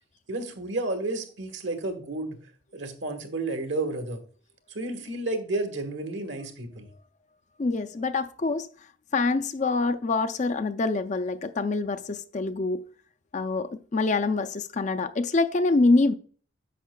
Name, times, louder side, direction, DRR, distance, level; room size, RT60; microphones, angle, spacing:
voice 1, 0.3-2.4 2.7-4.2 4.7-6.9, right 2 dB, 65° right, 1.4 m, -31 dB
voice 2, 7.6-8.7 9.1-12.8 13.3-16.1, left 3 dB, 35° left, 0.4 m, -25 dB
10.0 x 7.3 x 2.3 m
head